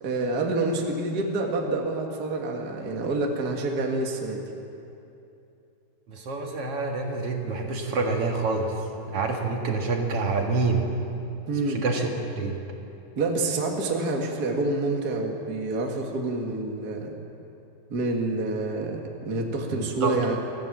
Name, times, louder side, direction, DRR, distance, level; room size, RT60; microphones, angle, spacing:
voice 1, 0.0-4.4 11.5-11.8 13.1-17.1 17.9-20.4, right 2 dB, 70° right, 1 dB, 0.9 m, -27 dB
voice 2, 6.1-8.7 9.1-10.8 11.7-12.6 19.7-20.2, right 3 dB, 50° right, 1 dB, 1.9 m, -27 dB
25.0 x 15.5 x 7.5 m, 2.8 s
omnidirectional pair, 4.9 m